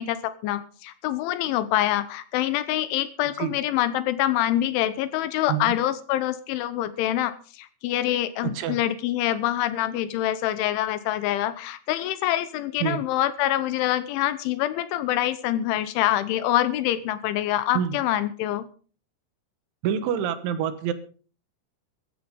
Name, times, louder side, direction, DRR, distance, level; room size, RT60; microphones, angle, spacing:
voice 1, 0.0-18.7, left 13 dB, 80° left, 14 dB, 3.2 m, -25 dB
voice 2, 8.4-8.8 12.8-13.0 17.8-18.0 19.8-20.9, right 9 dB, 75° right, 12 dB, 3.6 m, -26 dB
15.0 x 13.0 x 5.2 m, 0.40 s
omnidirectional pair, 5.8 m